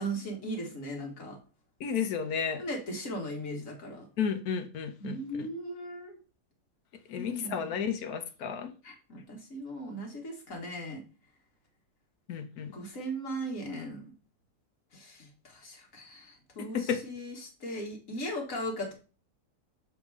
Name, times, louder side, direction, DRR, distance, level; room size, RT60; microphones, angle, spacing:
voice 1, 0.0-1.4 2.6-4.1 5.0-6.2 7.2-7.8 8.8-11.0 12.7-14.1 14.9-18.9, right 1 dB, 55° left, 1 dB, 2.1 m, -38 dB
voice 2, 1.8-2.6 4.2-5.5 7.1-8.7 12.3-12.7 16.6-17.0, left 7 dB, 70° left, 7 dB, 1.3 m, -32 dB
7.1 x 3.6 x 4.7 m, 0.35 s
omnidirectional pair, 1.7 m